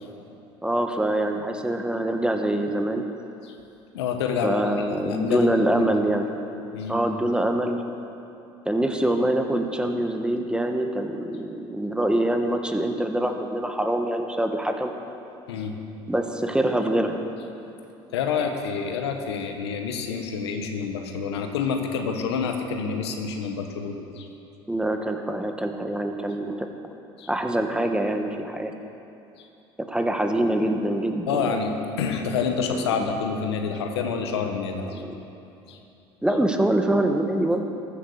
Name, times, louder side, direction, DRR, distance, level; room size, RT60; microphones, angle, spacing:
voice 1, 0.6-3.1 4.4-6.3 6.9-7.8 8.6-14.9 16.1-17.2 24.7-26.7 27.3-28.7 29.9-31.6 33.0-33.1 35.0-35.1 36.2-37.6, right 1 dB, 5° right, 4 dB, 1.6 m, -24 dB
voice 2, 3.9-5.9 6.7-7.0 15.5-15.7 18.1-24.3 27.2-27.3 29.4-29.5 31.3-35.0 35.6-35.8, left 5 dB, 85° left, 4 dB, 1.3 m, -28 dB
14.5 x 11.5 x 6.7 m, 2.8 s
hypercardioid pair, 70°, 13 cm